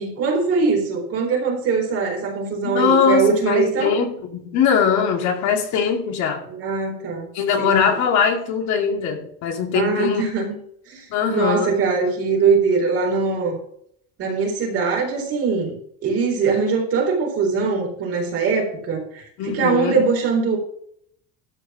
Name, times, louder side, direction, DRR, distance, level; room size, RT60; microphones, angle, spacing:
voice 1, 0.0-3.9 6.6-7.3 7.6-7.8 9.7-10.5 10.9-13.6 14.2-15.7 16.0-19.2 19.5-20.6, right 5 dB, 50° right, 4.0 m, -21 dB
voice 2, 2.6-6.4 7.3-10.2 11.1-11.8 19.4-20.1, left 6 dB, 60° left, 2.4 m, -21 dB
12.5 x 5.0 x 6.2 m
cardioid pair, 145°, 31 cm